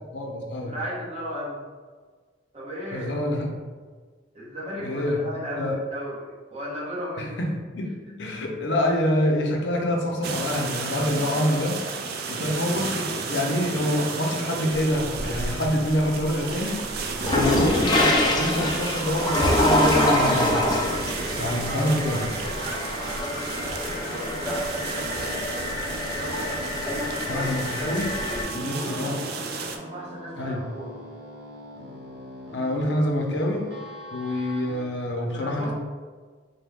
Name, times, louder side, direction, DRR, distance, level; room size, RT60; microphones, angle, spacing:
voice 1, 0.1-0.8 2.9-3.5 4.8-5.2 5.6-5.8 7.2-7.9 8.2-11.8 12.3-16.8 17.3-20.7 21.4-22.3 26.8-27.0 27.3-28.1 28.5-29.2 30.4-30.6 32.5-33.7 34.1-35.7, left 1 dB, 70° left, 1 dB, 0.6 m, -26 dB
voice 2, 0.6-1.7 2.5-3.1 4.3-7.3 8.2-8.3 21.4-26.5 26.8-27.5 27.8-29.0 29.8-30.9 35.2-35.7, equal, 35° right, -5 dB, 1.0 m, -36 dB
sound 1, 10.2-29.8, right 4 dB, 60° right, 0.4 m, -33 dB
sound 2, 14.7-15.7 16.1-28.4, left 1 dB, 25° left, 0.5 m, -25 dB
sound 3, 17.9-34.8, equal, 80° right, 0.9 m, -42 dB
4.0 x 2.2 x 3.5 m, 1.5 s
head